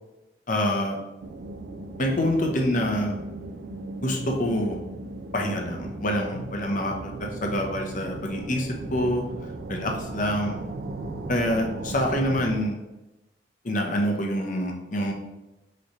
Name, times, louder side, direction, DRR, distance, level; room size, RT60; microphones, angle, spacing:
voice 1, 0.5-1.0 2.0-3.2 4.0-4.8 5.3-9.2 9.7-10.6 11.3-12.8 13.6-15.1, equal, 45° left, 1 dB, 0.8 m, -26 dB
sound 1, 1.2-12.6, right 2 dB, 65° right, 0.4 m, -37 dB
3.7 x 3.2 x 4.1 m, 0.99 s
head